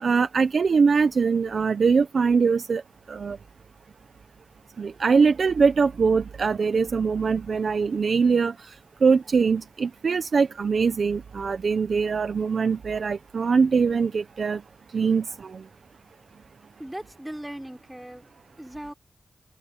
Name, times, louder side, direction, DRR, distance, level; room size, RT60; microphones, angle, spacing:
voice 1, 0.0-2.8 3.1-3.4 4.8-8.7 9.0-14.6 14.9-15.6, right 5 dB, 60° right, 0.8 m, -22 dB
voice 2, 16.8-18.9, right 1 dB, 5° right, 4.2 m, -39 dB
wide cardioid pair, 100°, 0 cm